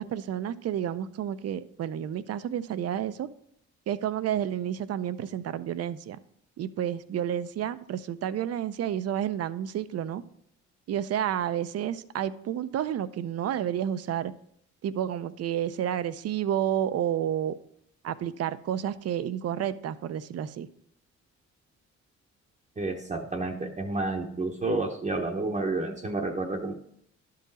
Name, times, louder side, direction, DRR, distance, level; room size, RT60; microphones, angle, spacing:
voice 1, 0.0-3.3 3.9-6.2 6.6-10.2 10.9-14.3 14.8-17.6 18.0-20.7, right 10 dB, 55° right, 14 dB, 0.5 m, -30 dB
voice 2, 22.8-26.7, right 2 dB, 25° right, 0 dB, 0.8 m, -30 dB
11.5 x 3.9 x 4.1 m, 0.70 s
cardioid pair, 90°, 30 cm